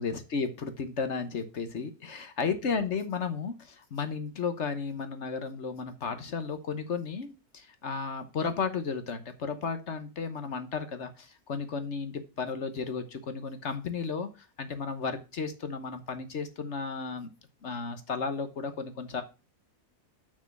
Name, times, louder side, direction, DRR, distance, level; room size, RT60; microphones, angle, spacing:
voice 1, 0.0-17.3 17.6-19.2, left 5 dB, 50° left, 8 dB, 1.2 m, -34 dB
6.3 x 6.2 x 6.0 m, 0.31 s
omnidirectional pair, 1.7 m